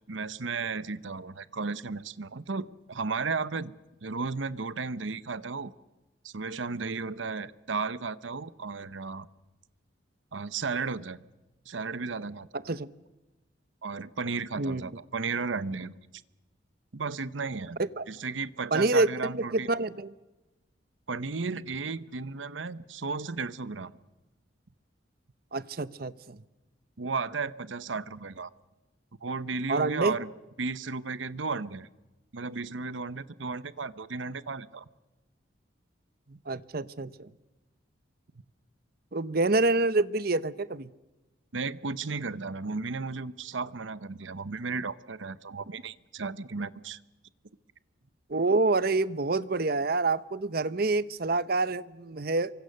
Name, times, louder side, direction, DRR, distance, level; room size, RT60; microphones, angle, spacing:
voice 1, 0.1-3.7 4.0-5.7 6.2-9.3 10.3-11.2 11.7-12.5 13.8-15.9 16.9-17.8 18.1-19.7 21.1-23.9 27.0-28.5 29.2-30.3 30.6-31.9 32.3-34.8 41.5-47.0, right 4 dB, 80° right, 16 dB, 0.9 m, -34 dB
voice 2, 12.5-12.9 14.6-14.8 17.8-18.0 18.7-20.1 25.5-26.4 29.7-30.1 36.3-37.3 39.1-40.9 48.3-52.5, right 3 dB, 50° right, 16 dB, 0.8 m, -27 dB
27.0 x 24.0 x 6.6 m, 1.1 s
head